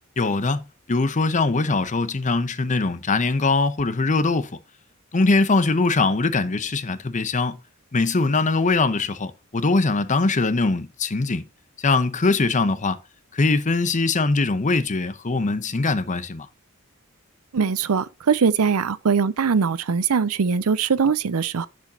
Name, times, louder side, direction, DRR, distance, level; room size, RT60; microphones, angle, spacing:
voice 1, 0.2-4.5 5.1-7.6 7.9-11.4 11.8-13.0 13.3-16.5, left 3 dB, 35° left, 0.7 m, -22 dB
voice 2, 17.5-21.7, right 5 dB, 85° right, 0.6 m, -21 dB
10.5 x 5.1 x 2.9 m
head